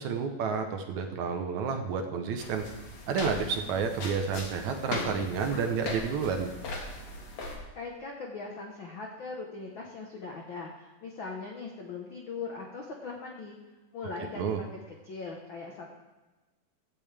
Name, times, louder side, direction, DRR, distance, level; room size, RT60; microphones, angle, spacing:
voice 1, 0.0-2.7 3.1-6.5 14.4-14.6, right 6 dB, 70° right, 5 dB, 1.9 m, -30 dB
sound 1, 2.4-7.6, left 2 dB, 50° left, 2.4 m, -39 dB
voice 2, 7.7-13.6 13.9-15.9, left 4 dB, 80° left, 0 dB, 1.1 m, -40 dB
16.0 x 10.5 x 3.4 m, 1.2 s
omnidirectional pair, 4.0 m